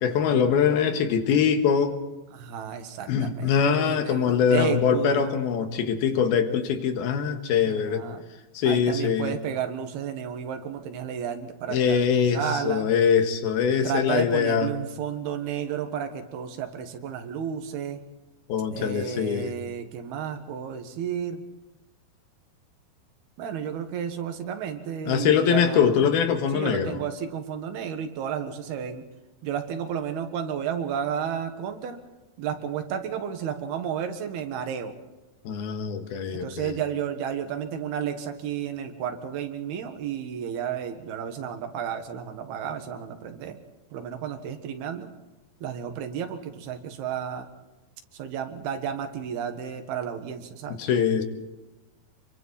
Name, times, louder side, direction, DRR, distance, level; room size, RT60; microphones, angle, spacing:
voice 1, 0.0-2.0 3.1-8.0 8.5-9.3 11.7-14.7 18.5-19.6 25.1-27.0 35.4-36.8 50.7-51.2, left 7 dB, 75° left, 6 dB, 3.3 m, -23 dB
voice 2, 2.3-5.3 7.7-8.2 8.7-12.9 13.8-18.0 18.7-21.4 23.4-26.0 26.5-29.0 29.4-32.0 32.4-34.9 36.3-43.6 43.9-45.1 45.6-47.5 48.1-50.8, right 8 dB, 80° right, 6 dB, 3.5 m, -32 dB
27.5 x 23.0 x 4.2 m, 1.1 s
omnidirectional pair, 4.4 m